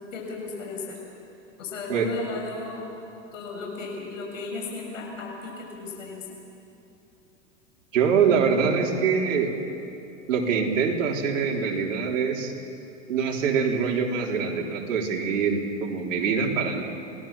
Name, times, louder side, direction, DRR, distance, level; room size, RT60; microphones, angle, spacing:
voice 1, 0.1-1.0 1.6-2.8 3.3-6.4, left 4 dB, 90° left, 0 dB, 6.9 m, -35 dB
voice 2, 7.9-9.5 10.3-12.5 13.1-16.8, right 6 dB, 80° right, 0 dB, 3.8 m, -24 dB
27.0 x 18.5 x 7.4 m, 2.7 s
supercardioid pair, 140°, 38 cm